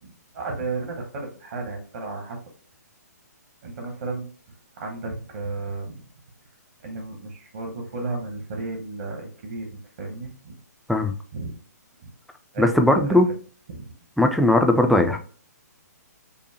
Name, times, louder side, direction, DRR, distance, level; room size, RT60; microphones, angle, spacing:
voice 1, 0.0-2.4 3.6-4.3 4.8-6.0 6.8-10.5 11.3-11.6 12.0-12.1 12.5-12.7 13.1-13.2 13.7-13.9, right 3 dB, 50° right, 1.1 m, -33 dB
voice 2, 12.6-13.3 14.2-15.2, left 1 dB, ahead, 0.3 m, -18 dB
5.4 x 2.1 x 2.8 m
figure-of-eight pair, 125°, 9 cm